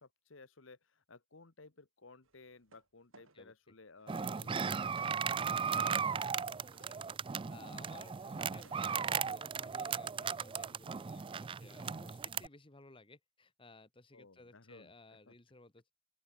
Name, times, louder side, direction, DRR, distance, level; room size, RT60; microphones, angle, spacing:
voice 1, 0.0-5.9 14.1-15.3, left 3 dB, 70° left, 1.4 m, -58 dB
sound 1, 2.2-2.9 3.1-3.4 4.0-4.2 4.6-7.0 8.2-9.7 10.0-10.7, right 4 dB, 85° right, 3.8 m, -64 dB
sound 2, 4.1-12.5, right 6 dB, 25° right, 0.4 m, -36 dB
voice 2, 6.6-15.9, left 2 dB, 25° left, 1.5 m, -58 dB
open air
head